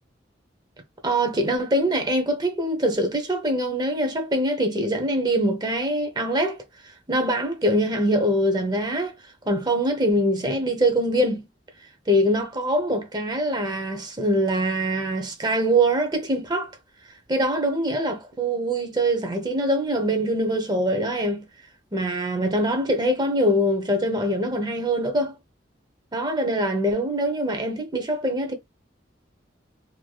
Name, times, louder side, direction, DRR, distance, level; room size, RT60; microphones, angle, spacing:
voice 1, 1.0-9.2 9.5-11.4 12.1-16.7 17.3-21.4 21.9-25.4 26.1-28.5, right 1 dB, 25° right, 0.6 m, -23 dB
3.1 x 2.6 x 2.3 m
head